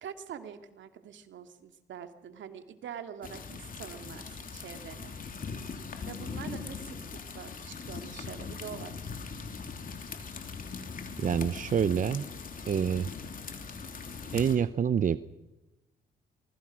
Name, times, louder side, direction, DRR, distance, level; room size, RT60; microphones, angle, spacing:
voice 1, 0.0-5.2 6.1-7.0 7.3-8.9, right 8 dB, 70° right, 8 dB, 2.4 m, -44 dB
sound 1, 3.2-14.6, left 5 dB, 45° left, 3.2 m, -40 dB
voice 2, 11.2-12.2 12.7-13.1 14.3-15.2, right 7 dB, 40° right, 14 dB, 0.8 m, -27 dB
25.0 x 20.0 x 6.3 m, 1.0 s
cardioid pair, 90°, 20 cm